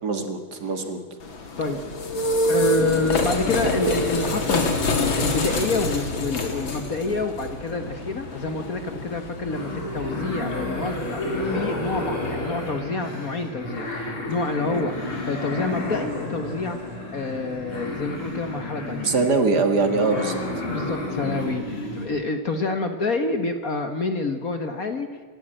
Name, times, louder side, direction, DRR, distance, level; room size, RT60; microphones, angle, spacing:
voice 1, 0.0-1.0 14.7-14.9 19.0-20.4, right 3 dB, 50° right, 7 dB, 2.3 m, -23 dB
sound 1, 1.2-12.6, left 1 dB, 60° left, 3.0 m, -27 dB
voice 2, 2.5-16.8 17.1-19.1 20.7-25.1, left 3 dB, 45° left, 7 dB, 1.5 m, -28 dB
sound 2, 9.5-22.1, left 2 dB, 80° left, 4.7 m, -31 dB
26.5 x 13.0 x 9.0 m, 1.5 s
omnidirectional pair, 2.4 m